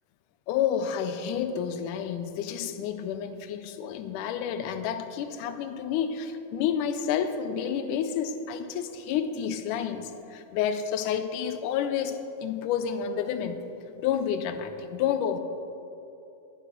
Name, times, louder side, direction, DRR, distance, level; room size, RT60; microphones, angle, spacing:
voice 1, 0.5-13.6 14.0-15.4, left 8 dB, 85° left, 9 dB, 2.1 m, -30 dB
19.5 x 6.5 x 3.8 m, 2.8 s
omnidirectional pair, 3.6 m